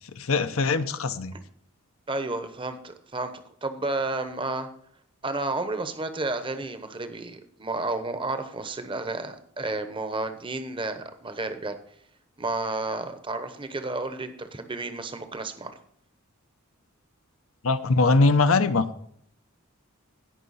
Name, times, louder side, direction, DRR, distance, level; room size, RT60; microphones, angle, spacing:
voice 1, 0.2-1.3 17.6-18.9, left 3 dB, 75° left, 9 dB, 0.8 m, -21 dB
voice 2, 2.1-3.3 3.6-4.7 5.2-11.7 12.4-15.7, right 2 dB, 25° right, 9 dB, 0.9 m, -31 dB
16.5 x 5.7 x 4.1 m, 0.65 s
head